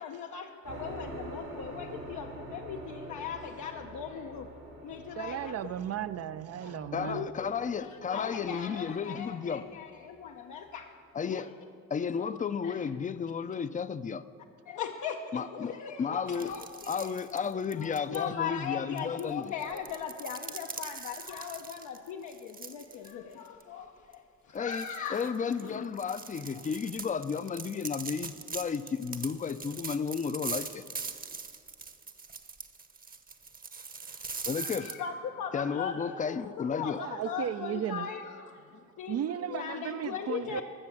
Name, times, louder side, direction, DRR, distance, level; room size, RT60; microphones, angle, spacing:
voice 1, 0.0-4.5 4.8-5.7 6.6-7.5 7.8-11.5 12.2-12.4 12.6-12.8 14.7-17.1 17.8-25.3 25.6-25.8 34.6-39.2 39.5-40.6, left 7 dB, 75° left, 0.7 m, -39 dB
sound 1, 0.6-10.8, right 1 dB, 80° right, 3.4 m, -46 dB
voice 2, 5.1-7.3 36.8-38.1 39.1-40.6, right 10 dB, 55° right, 0.5 m, -35 dB
voice 3, 6.9-9.7 11.1-11.5 11.9-14.2 15.3-15.7 16.0-16.5 16.9-19.5 24.5-30.8 34.5-34.9 35.5-37.0, left 6 dB, 25° left, 0.5 m, -33 dB
sound 2, 16.3-18.2 19.0-23.1 23.5-23.6 24.1-24.2 24.7-34.9, right 4 dB, 30° right, 0.9 m, -42 dB
13.5 x 6.8 x 7.3 m
cardioid pair, 90°, 30 cm